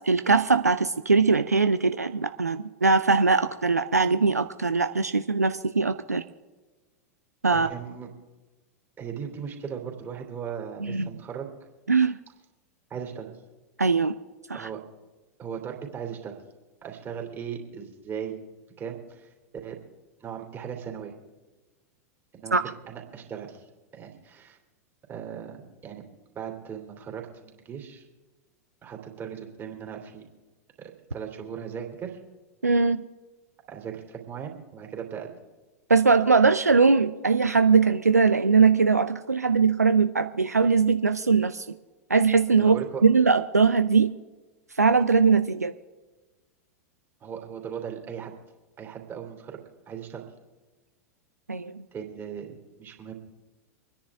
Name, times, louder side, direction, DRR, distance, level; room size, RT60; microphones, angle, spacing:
voice 1, 0.0-6.2 7.4-7.7 10.8-11.1 11.9-12.2 13.8-14.1 14.5-14.7 22.5-22.6 32.6-33.0 35.9-41.6 42.1-42.8 43.0-44.1 44.8-45.7 51.5-51.8, right 4 dB, 85° right, 10 dB, 0.5 m, -21 dB
voice 2, 7.5-8.1 9.0-11.5 12.9-13.3 14.5-14.8 15.4-16.4 16.8-18.4 18.8-19.3 19.6-19.8 20.2-21.1 22.3-22.6 22.9-24.6 25.1-26.0 26.3-28.1 28.8-30.2 30.8-32.2 33.7-35.3 42.6-43.0 47.2-48.3 48.8-49.6 49.9-50.2 51.9-53.1, right 7 dB, 25° right, 1 dB, 3.0 m, -38 dB
25.5 x 10.0 x 3.6 m, 1.2 s
figure-of-eight pair, 90°, 8 cm